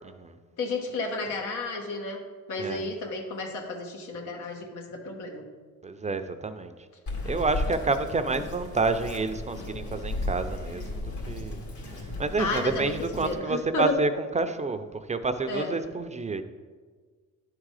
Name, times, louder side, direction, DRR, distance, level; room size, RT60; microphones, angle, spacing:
voice 1, 0.6-2.2 2.5-5.4 12.4-12.9 13.2-14.0 15.5-15.8, left 3 dB, 90° left, 1 dB, 1.4 m, -32 dB
voice 2, 5.8-6.7 7.2-11.6 12.2-16.4, right 3 dB, 25° right, 9 dB, 0.5 m, -29 dB
Bird vocalization bird call bird song, 7.1-13.3, left 2 dB, 70° left, 2.1 m, -35 dB
11.0 x 3.8 x 4.8 m, 1.5 s
cardioid pair, 90°, 30 cm